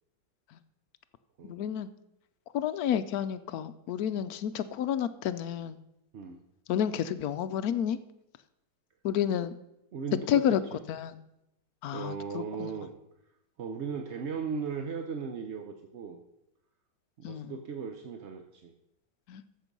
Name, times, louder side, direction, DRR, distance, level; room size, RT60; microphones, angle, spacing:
voice 1, 1.4-1.9 2.5-5.8 6.7-8.0 9.0-9.5 10.3-11.2 11.8-12.7 17.2-17.5 19.3-19.4, left 9 dB, 70° left, 13 dB, 1.0 m, -30 dB
voice 2, 9.9-10.4 11.9-12.9 13.6-16.2 17.2-18.7, right 6 dB, 55° right, 5 dB, 0.8 m, -37 dB
14.5 x 6.2 x 5.2 m, 0.87 s
omnidirectional pair, 1.9 m